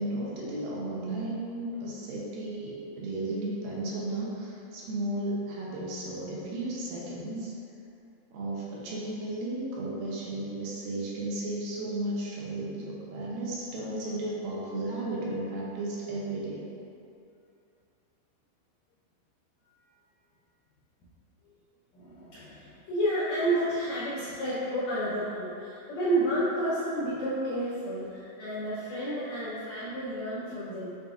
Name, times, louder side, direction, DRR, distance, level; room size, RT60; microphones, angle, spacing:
voice 1, 0.0-7.5 8.3-16.6, right 1 dB, 80° right, -5 dB, 2.3 m, -34 dB
voice 2, 21.9-30.9, right 1 dB, 80° left, -12 dB, 1.6 m, -30 dB
6.5 x 2.5 x 2.4 m, 2.6 s
omnidirectional pair, 4.0 m